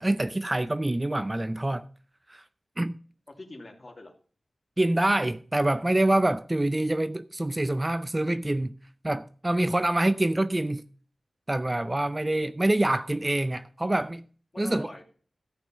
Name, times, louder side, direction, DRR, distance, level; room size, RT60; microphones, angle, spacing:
voice 1, 0.0-1.9 2.3-2.4 2.8-2.9 4.8-8.7 9.0-10.8 11.5-14.2 14.6-14.9, right 1 dB, 25° right, 0.5 m, -26 dB
voice 2, 3.3-4.1 9.7-10.2 14.5-15.0, left 2 dB, 40° left, 2.4 m, -45 dB
13.5 x 5.8 x 5.4 m
wide cardioid pair, 70°, 0 cm